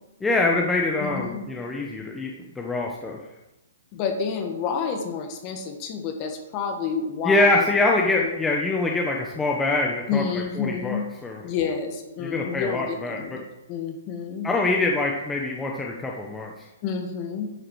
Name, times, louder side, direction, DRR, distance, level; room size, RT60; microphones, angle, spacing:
voice 1, 0.2-2.3 2.6-3.2 7.2-10.2 10.6-11.4 12.2-13.4 14.4-16.5, left 2 dB, 10° left, -1 dB, 0.9 m, -24 dB
voice 2, 1.0-1.5 3.9-7.7 8.0-8.4 10.1-11.1 11.4-13.4 13.7-14.5 16.8-17.5, left 6 dB, 35° left, 4 dB, 1.5 m, -29 dB
10.0 x 4.9 x 4.8 m, 0.96 s
hypercardioid pair, 145°, 0 cm